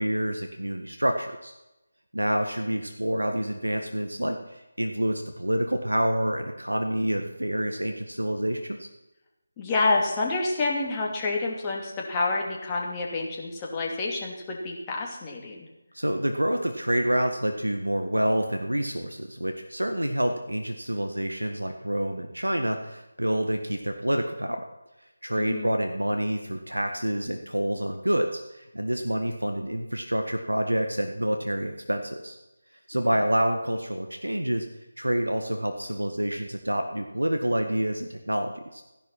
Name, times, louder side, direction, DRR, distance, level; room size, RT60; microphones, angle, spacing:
voice 1, 0.0-1.6 2.1-8.9 15.9-24.6 25.2-32.4 32.9-34.7 35.0-38.8, right 1 dB, 90° right, 5 dB, 1.6 m, -27 dB
voice 2, 9.6-15.7 25.3-25.7, left 3 dB, 15° left, -2 dB, 2.7 m, -28 dB
15.5 x 11.0 x 5.9 m, 0.98 s
figure-of-eight pair, 160°, 0 cm